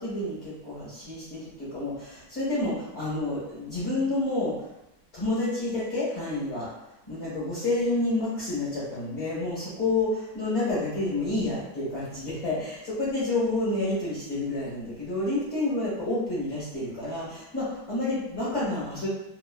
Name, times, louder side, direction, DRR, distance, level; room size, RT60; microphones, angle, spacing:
voice 1, 0.0-4.7 5.1-6.7 7.1-19.1, left 2 dB, 40° left, -9 dB, 1.1 m, -29 dB
3.3 x 2.1 x 2.2 m, 0.86 s
omnidirectional pair, 2.2 m